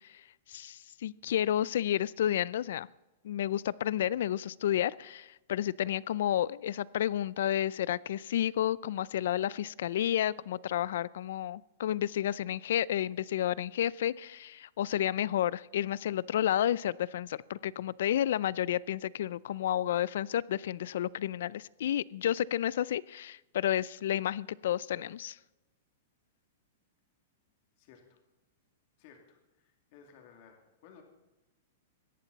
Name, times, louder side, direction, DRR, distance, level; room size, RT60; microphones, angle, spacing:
voice 1, 0.5-2.9 3.2-25.4, left 11 dB, 65° left, 22 dB, 0.4 m, -31 dB
voice 2, 27.8-28.2 29.0-31.0, left 7 dB, 40° left, 2 dB, 2.5 m, -57 dB
18.5 x 14.0 x 4.1 m, 1.0 s
supercardioid pair, 170°, 0 cm